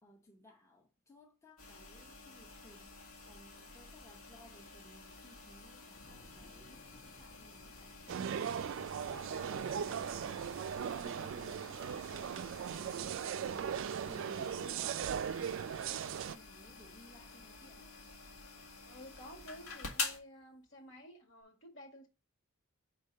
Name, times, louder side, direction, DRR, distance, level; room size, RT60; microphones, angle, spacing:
voice 1, 0.0-3.0 3.3-10.7 10.9-18.0, left 2 dB, 15° left, 0.8 m, -59 dB
sound 1, 1.6-20.2, left 4 dB, 75° left, 1.8 m, -49 dB
sound 2, 3.2-21.0 21.4-21.5, left 2 dB, 40° left, 1.1 m, -68 dB
sound 3, 8.1-16.4, right 8 dB, 60° right, 0.3 m, -38 dB
voice 2, 18.9-22.1, left 1 dB, 60° left, 1.8 m, -52 dB
5.2 x 4.1 x 5.4 m
head